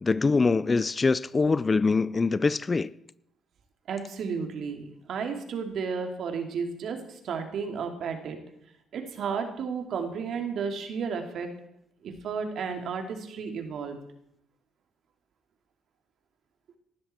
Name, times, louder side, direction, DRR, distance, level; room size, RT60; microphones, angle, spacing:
voice 1, 0.0-2.9, left 4 dB, 30° left, 0.5 m, -24 dB
voice 2, 3.9-8.4 8.9-11.5 12.0-14.0, right 6 dB, 70° right, 2.7 m, -33 dB
19.0 x 13.0 x 4.4 m
cardioid pair, 90°, 0 cm